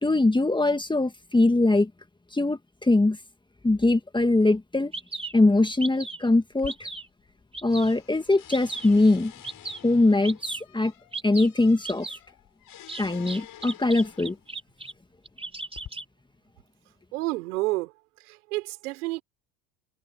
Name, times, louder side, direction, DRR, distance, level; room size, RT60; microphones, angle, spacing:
voice 1, 0.0-1.9 2.3-3.2 3.6-4.9 5.3-6.7 7.6-9.3 9.8-10.4 10.7-10.9 11.2-12.1 13.0-14.4, left 2 dB, 10° left, 1.9 m, -22 dB
Bird vocalization bird call bird song, 4.5-4.6 4.9-5.3 5.8-6.3 6.7-7.1 7.5-7.9 8.5-8.9 9.4-9.8 10.2-10.6 11.1-11.5 11.8-12.2 12.9-14.9 15.3-16.0, right 3 dB, 15° right, 3.8 m, -36 dB
sound 1, 6.5-7.4 7.7-14.5 15.3-15.9, left 11 dB, 45° left, 5.4 m, -49 dB
voice 2, 17.1-17.9 18.2-19.2, right 21 dB, 80° right, 5.6 m, -29 dB
hypercardioid pair, 85°, 44 cm